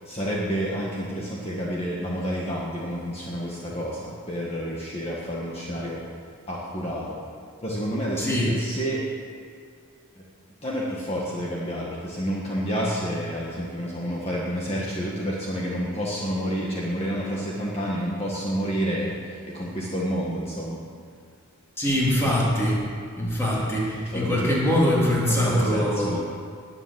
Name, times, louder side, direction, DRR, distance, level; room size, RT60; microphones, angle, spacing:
voice 1, 0.0-6.0 6.5-7.2 7.6-9.1 10.1-10.2 10.6-20.8 24.0-24.7 25.3-26.2, equal, 25° left, -5 dB, 1.7 m, -29 dB
voice 2, 8.2-8.5 21.8-22.8 23.2-26.1, equal, 10° left, -6 dB, 3.7 m, -23 dB
21.0 x 7.3 x 7.8 m, 2.3 s
head